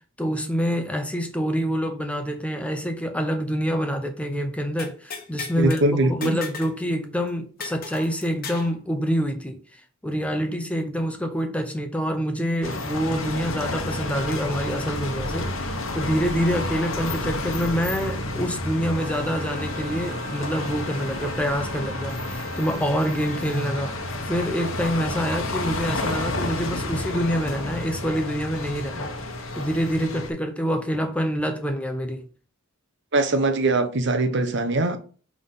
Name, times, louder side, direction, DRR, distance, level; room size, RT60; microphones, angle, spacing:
voice 1, 0.2-9.6 10.0-29.1 29.6-32.2, equal, 5° left, 0.7 m, -26 dB
sound 1, 4.8-5.8 6.2-6.8 7.0-7.1 7.6-8.7, left 5 dB, 45° left, 1.3 m, -36 dB
voice 2, 5.6-6.4 33.1-35.0, right 2 dB, 55° right, 0.8 m, -22 dB
sound 2, 12.6-30.3, left 2 dB, 70° left, 1.1 m, -30 dB
sound 3, 19.0-25.4, equal, 20° right, 2.1 m, -40 dB
5.7 x 3.7 x 5.6 m
head